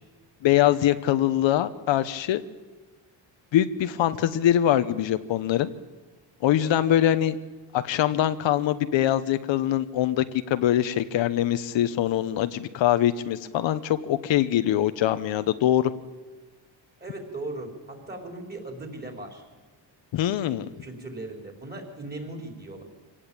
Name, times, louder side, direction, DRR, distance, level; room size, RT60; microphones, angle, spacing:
voice 1, 0.4-2.4 3.5-5.7 6.4-7.4 7.7-15.9 20.1-20.7, left 12 dB, 75° left, 11 dB, 1.1 m, -23 dB
voice 2, 17.0-19.4 20.8-22.8, right 2 dB, 20° right, 3 dB, 4.6 m, -38 dB
25.5 x 17.5 x 8.9 m, 1.3 s
cardioid pair, 140°, 46 cm